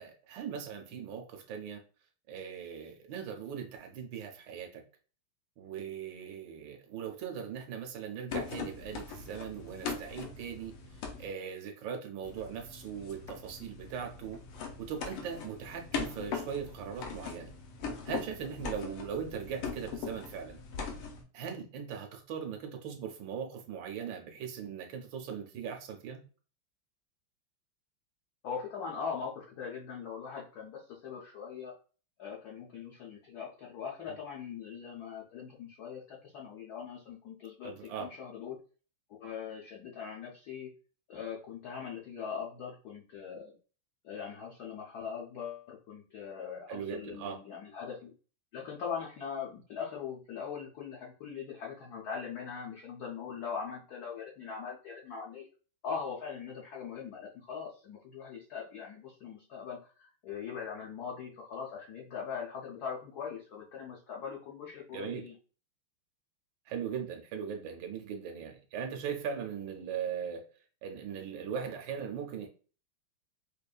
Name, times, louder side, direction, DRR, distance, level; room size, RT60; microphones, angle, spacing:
voice 1, 0.0-1.8 2.3-4.8 5.6-10.7 11.2-14.4 14.8-17.5 18.1-20.6 21.3-26.2 37.6-38.1 46.7-47.4 64.9-65.2 66.7-70.5 70.8-72.5, right 7 dB, 70° right, 4 dB, 1.3 m, -39 dB
sound 1, 8.3-11.2 12.2-21.2, left 5 dB, 85° left, 1.7 m, -41 dB
voice 2, 28.4-31.7 32.2-38.6 39.2-40.7 41.1-43.6 44.0-48.1 48.5-55.5 55.8-65.3, left 6 dB, 65° left, -3 dB, 1.0 m, -41 dB
5.1 x 2.6 x 2.3 m, 0.38 s
omnidirectional pair, 2.4 m